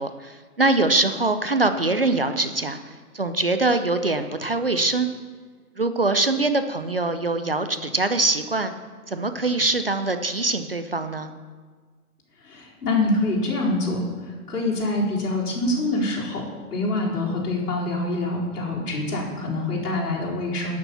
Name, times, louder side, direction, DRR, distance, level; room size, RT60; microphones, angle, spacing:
voice 1, 0.0-5.1 5.8-8.7 9.1-11.3, right 2 dB, 40° right, 9 dB, 0.5 m, -23 dB
voice 2, 12.4-14.0 14.5-16.4 16.7-20.8, left 2 dB, 75° left, -3 dB, 4.3 m, -25 dB
11.5 x 7.0 x 7.0 m, 1.5 s
hypercardioid pair, 180°, 46 cm